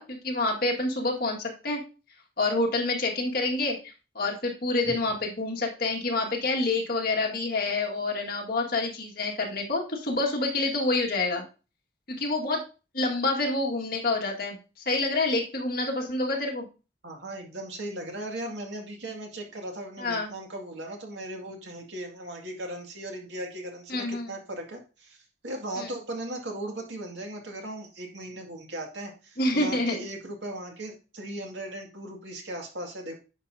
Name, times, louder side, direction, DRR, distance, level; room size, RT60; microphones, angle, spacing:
voice 1, 0.0-1.8 2.4-3.8 4.2-11.4 12.1-12.6 12.9-16.6 20.0-20.3 23.9-24.4 25.8-25.9 29.4-30.0, left 2 dB, 55° left, 0 dB, 1.9 m, -27 dB
voice 2, 17.0-25.2 25.4-33.2, right 1 dB, 85° right, 2 dB, 2.1 m, -37 dB
10.0 x 6.0 x 2.7 m, 0.32 s
head